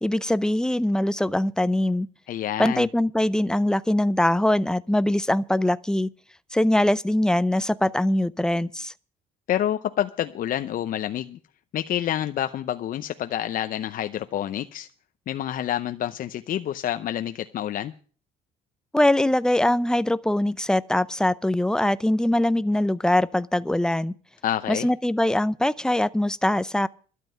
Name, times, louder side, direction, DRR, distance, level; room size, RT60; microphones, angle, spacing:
voice 1, 0.0-2.1 2.6-6.1 6.5-8.9 18.9-24.1 24.7-26.9, left 1 dB, 5° left, 0.6 m, -22 dB
voice 2, 2.3-2.9 9.5-11.4 11.7-14.9 15.3-17.9 24.4-24.9, left 11 dB, 55° left, 0.7 m, -28 dB
12.5 x 7.6 x 9.4 m
cardioid pair, 110°, 17 cm